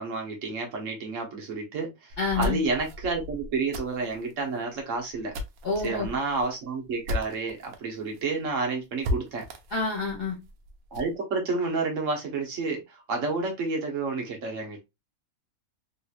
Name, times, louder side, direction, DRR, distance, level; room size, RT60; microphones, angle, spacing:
voice 1, 0.0-5.3 5.8-9.4 10.9-14.8, right 3 dB, 65° right, 1.2 m, -30 dB
sound 1, 2.1-7.8 8.1-8.2 8.5-8.6 9.0-11.1, left 1 dB, 85° right, 1.1 m, -35 dB
voice 2, 2.2-2.6 5.6-6.1 9.7-10.3, left 4 dB, 40° left, 1.6 m, -28 dB
3.2 x 2.9 x 2.3 m
omnidirectional pair, 1.5 m